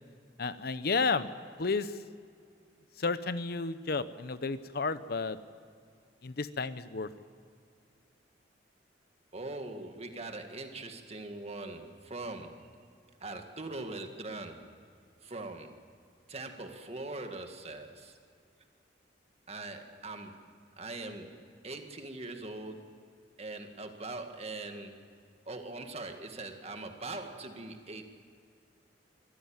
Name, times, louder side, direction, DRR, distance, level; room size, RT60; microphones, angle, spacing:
voice 1, 0.4-1.3 1.6-2.0 3.0-5.4 6.2-7.1, left 4 dB, 55° left, 14 dB, 0.8 m, -32 dB
voice 2, 9.3-12.9 13.2-14.8 15.2-15.8 16.3-18.2 19.5-25.0 25.5-28.0, right 2 dB, 35° right, 6 dB, 1.9 m, -42 dB
24.0 x 15.0 x 8.8 m, 2.3 s
head